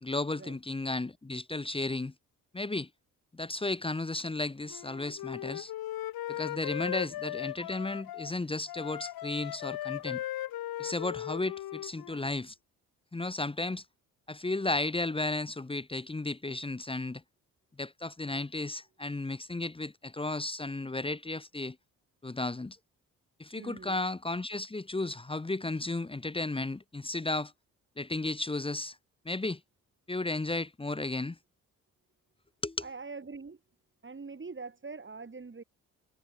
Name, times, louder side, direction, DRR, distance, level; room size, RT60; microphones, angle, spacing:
voice 1, 0.0-2.1 2.5-2.9 3.3-5.7 6.3-10.2 10.8-12.5 13.1-13.8 14.3-17.2 17.8-21.8 22.2-22.8 23.4-27.5 28.0-29.0 29.2-29.6 30.1-31.4 32.6-32.8, left 2 dB, 15° left, 1.0 m, -34 dB
Wind instrument woodwind instrument, 4.7-8.3 8.7-12.3, left 14 dB, 75° left, 2.3 m, -38 dB
voice 2, 6.8-7.1 23.5-24.0 32.8-33.6 34.0-35.6, right 4 dB, 35° right, 6.1 m, -44 dB
supercardioid pair, 60°, 36 cm